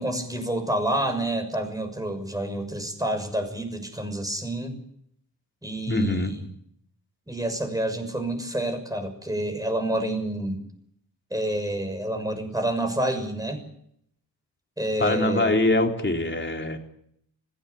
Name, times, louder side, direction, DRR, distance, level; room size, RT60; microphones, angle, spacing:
voice 1, 0.0-4.8 5.6-6.4 7.3-10.6 11.3-13.6 14.8-15.5, right 1 dB, 10° right, 6 dB, 6.5 m, -28 dB
voice 2, 5.9-6.3 15.0-16.8, left 2 dB, 25° left, 2 dB, 3.8 m, -23 dB
20.5 x 16.5 x 8.7 m, 0.70 s
cardioid pair, 85°, 42 cm